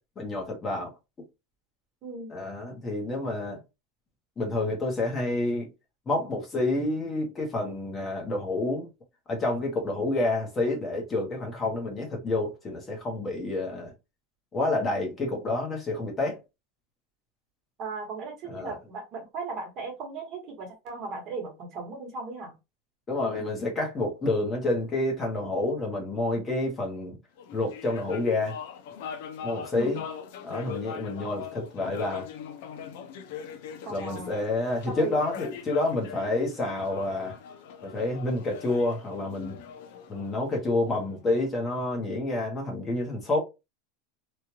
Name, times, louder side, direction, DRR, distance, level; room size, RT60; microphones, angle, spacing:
voice 1, 0.2-0.9 2.3-3.6 4.4-5.7 6.1-8.9 9.3-13.9 14.5-16.4 18.5-18.8 23.1-27.2 27.5-28.6 29.4-30.0 30.4-32.3 33.9-37.4 37.8-39.6 40.1-43.4, left 2 dB, 20° left, 1.0 m, -29 dB
voice 2, 2.0-2.3 17.8-22.5 29.7-30.0 33.9-34.3 34.9-35.2, right 4 dB, 35° right, 1.3 m, -37 dB
sound 1, 27.4-41.1, left 7 dB, 65° left, 0.7 m, -41 dB
3.1 x 2.4 x 2.8 m
supercardioid pair, 160°, 0 cm